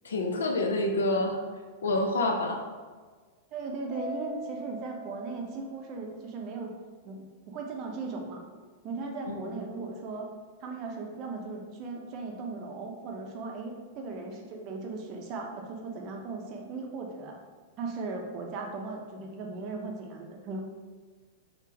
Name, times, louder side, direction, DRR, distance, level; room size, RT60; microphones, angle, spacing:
voice 1, 0.0-1.4 1.8-2.6 9.3-9.6, left 2 dB, 85° left, 3 dB, 0.4 m, -28 dB
voice 2, 3.5-6.7 7.0-8.4 8.8-10.3 10.6-17.4 17.8-20.6, right 3 dB, 45° right, 1 dB, 0.6 m, -37 dB
Mallet percussion, 3.9-6.3, left 1 dB, 30° left, 1.0 m, -42 dB
3.6 x 2.0 x 2.7 m, 1.4 s
hypercardioid pair, 110°, 0 cm